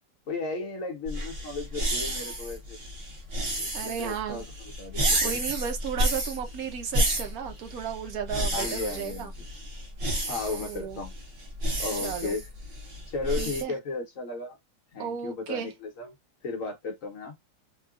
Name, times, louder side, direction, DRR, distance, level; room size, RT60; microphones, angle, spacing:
voice 1, 0.3-2.9 3.6-4.4 4.8-5.4 8.5-9.5 10.3-11.1 11.8-12.4 13.1-14.6 14.9-16.1 16.4-17.4, left 3 dB, 60° left, 1.3 m, -35 dB
sound 1, 1.1-13.6, right 1 dB, 45° right, 1.1 m, -31 dB
voice 2, 3.7-4.5 5.2-9.3 10.6-11.0 12.0-12.4 13.4-13.7 15.0-15.7, right 8 dB, 70° right, 1.2 m, -34 dB
3.7 x 2.3 x 2.4 m
omnidirectional pair, 1.7 m